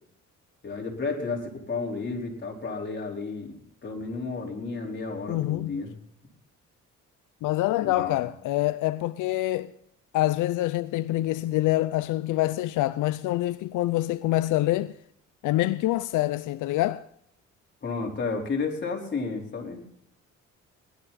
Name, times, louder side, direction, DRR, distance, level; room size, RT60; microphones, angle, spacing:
voice 1, 0.6-5.9 7.8-8.3 17.8-19.8, left 4 dB, 35° left, 4.4 m, -32 dB
voice 2, 5.3-5.8 7.4-9.7 10.1-14.9 15.4-17.0, left 16 dB, 90° left, 0.6 m, -26 dB
19.5 x 12.5 x 4.2 m
cardioid pair, 90°, 30 cm